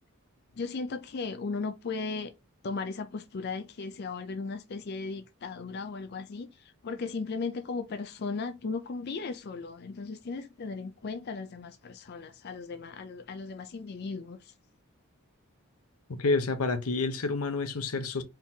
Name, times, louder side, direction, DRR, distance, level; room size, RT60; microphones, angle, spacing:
voice 1, 0.6-2.3 2.6-14.5, left 4 dB, 50° left, 0.4 m, -36 dB
voice 2, 16.2-18.2, left 3 dB, 85° left, 0.8 m, -28 dB
4.5 x 3.7 x 2.7 m
head